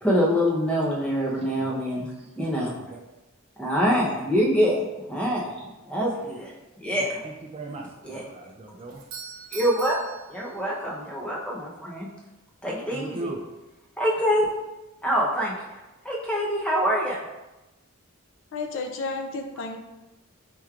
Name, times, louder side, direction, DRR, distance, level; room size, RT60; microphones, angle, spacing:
voice 1, 0.0-2.1 2.4-2.7 3.6-6.5 6.8-7.1 8.0-8.2 9.5-10.0 10.3-12.1 12.6-13.2 14.0-14.5 15.0-15.8 16.0-17.2, equal, 5° left, -4 dB, 0.7 m, -25 dB
voice 2, 1.4-2.3 2.8-3.0 6.9-9.0 12.9-13.5, right 2 dB, 30° right, 2 dB, 0.4 m, -39 dB
Doorbell, 8.9-11.1, right 7 dB, 75° right, 0.7 m, -42 dB
voice 3, 18.5-19.8, left 3 dB, 65° left, 5 dB, 0.4 m, -32 dB
4.5 x 3.1 x 2.4 m, 1.0 s
head